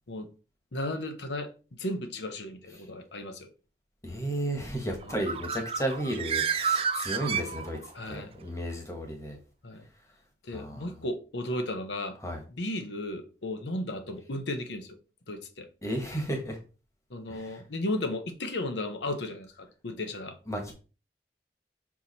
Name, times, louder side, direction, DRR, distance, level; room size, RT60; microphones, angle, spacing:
voice 1, 0.7-1.5 1.8-3.5 5.0-5.2 7.9-8.3 9.6-9.8 10.4-12.2 12.5-15.0 15.3-15.7 17.1-20.4, left 1 dB, 90° left, 1.0 m, -34 dB
voice 2, 4.0-7.8 8.0-9.4 10.5-10.9 12.2-12.4 15.8-16.6 17.3-17.6 20.5-20.7, right 1 dB, 15° left, 1.3 m, -33 dB
Bird, 5.0-8.1, right 6 dB, 30° right, 0.5 m, -30 dB
5.7 x 4.8 x 4.1 m
head